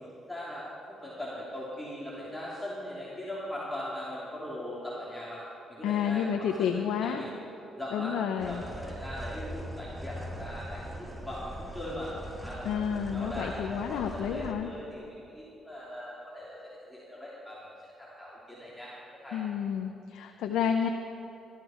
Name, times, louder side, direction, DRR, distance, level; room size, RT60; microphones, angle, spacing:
voice 1, 0.0-5.4 5.7-7.3 7.8-12.1 12.4-18.9 19.2-19.4, left 1 dB, 5° left, -8 dB, 3.0 m, -40 dB
voice 2, 5.8-7.2 7.9-8.6 12.6-14.7 19.3-20.9, left 8 dB, 85° left, 4 dB, 0.7 m, -30 dB
sound 1, 8.4-14.5, equal, 15° right, 1.6 m, -41 dB
17.5 x 13.0 x 4.4 m, 3.0 s
cardioid pair, 90°, 0 cm